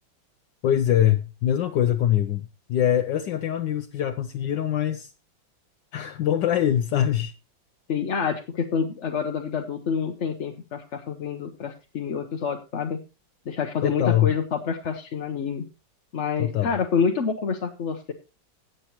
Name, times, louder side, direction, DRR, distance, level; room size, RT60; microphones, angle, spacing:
voice 1, 0.6-5.1 5.9-7.3 13.8-14.3 16.4-16.7, left 11 dB, 70° left, 1.3 m, -23 dB
voice 2, 7.9-13.0 13.5-15.6 16.1-18.1, left 6 dB, 50° left, 0.9 m, -27 dB
17.5 x 7.9 x 2.9 m
omnidirectional pair, 2.1 m